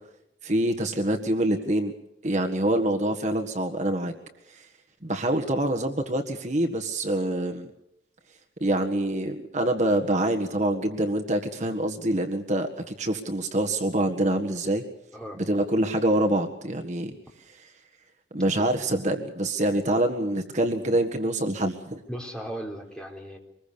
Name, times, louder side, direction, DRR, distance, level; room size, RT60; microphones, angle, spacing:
voice 1, 0.4-1.9 2.2-4.1 4.5-4.7 5.0-7.7 8.6-14.8 15.4-17.1 17.5-17.7 18.3-22.0, right 1 dB, 40° right, 3 dB, 1.7 m, -25 dB
voice 2, 22.1-23.4, equal, 5° left, 1 dB, 3.9 m, -37 dB
25.5 x 21.0 x 6.9 m, 0.81 s
head